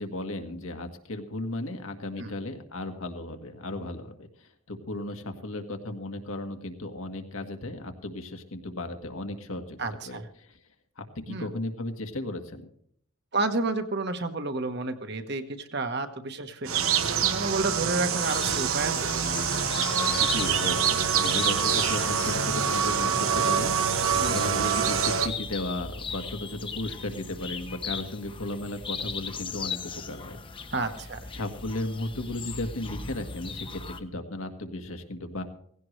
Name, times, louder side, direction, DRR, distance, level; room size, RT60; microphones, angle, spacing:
voice 1, 0.0-9.8 10.1-10.6 11.0-12.7 20.2-23.7 24.3-30.4 31.3-35.4, left 1 dB, 75° left, 5 dB, 1.7 m, -35 dB
voice 2, 9.8-10.3 11.3-11.5 13.3-16.8 17.2-19.4 24.1-24.4 30.7-31.2, right 3 dB, 50° right, 7 dB, 1.2 m, -30 dB
sound 1, 16.7-25.3, right 7 dB, 80° right, 1.2 m, -25 dB
sound 2, 18.2-34.0, left 5 dB, 25° left, 0.8 m, -38 dB
17.5 x 16.5 x 3.3 m, 0.66 s
head